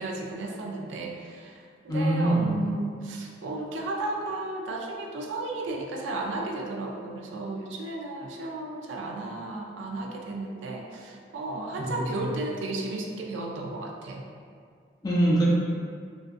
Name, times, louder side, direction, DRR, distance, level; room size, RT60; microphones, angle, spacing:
voice 1, 0.0-14.2, right 2 dB, 85° right, 1 dB, 0.4 m, -34 dB
voice 2, 1.9-2.5 11.8-12.3 15.0-15.5, right 1 dB, 20° left, -6 dB, 0.4 m, -24 dB
2.5 x 2.4 x 2.4 m, 2.1 s
head